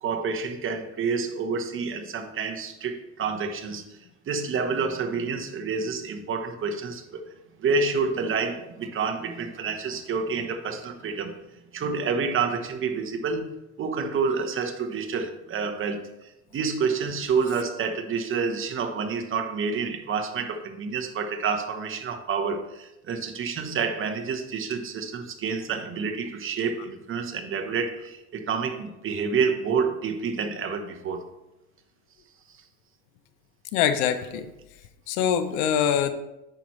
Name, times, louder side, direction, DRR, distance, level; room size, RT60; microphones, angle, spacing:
voice 1, 0.0-4.0 4.3-7.2 7.6-11.4 11.7-13.5 13.8-31.3, right 5 dB, 40° right, 5 dB, 1.0 m, -28 dB
voice 2, 33.7-34.5 35.1-36.1, left 9 dB, 90° left, 10 dB, 0.7 m, -24 dB
8.8 x 5.9 x 3.1 m, 0.93 s
cardioid pair, 105°, 31 cm